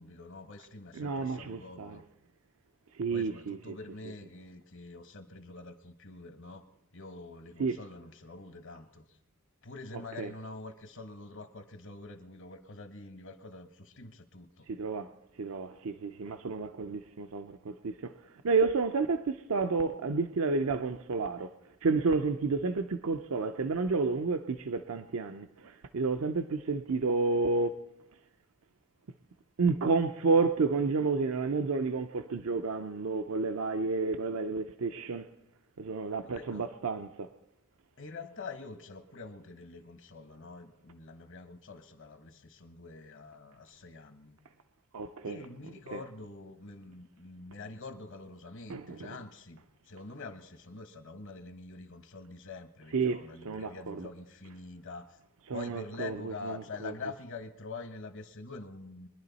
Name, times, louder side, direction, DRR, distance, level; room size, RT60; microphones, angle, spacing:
voice 1, 0.0-2.0 3.1-6.6 6.9-9.2 9.6-14.7 36.1-36.7 38.0-44.4 45.2-55.2 55.5-59.1, left 3 dB, 60° left, 1.3 m, -46 dB
voice 2, 0.9-2.0 3.0-3.8 7.6-7.8 10.2-10.3 14.7-15.1 15.4-21.6 21.8-27.8 29.6-35.3 35.8-37.3 44.9-45.4 45.9-46.0 48.7-49.2 52.9-54.1 55.5-56.9, right 4 dB, 65° right, 0.5 m, -31 dB
23.0 x 11.0 x 4.1 m
head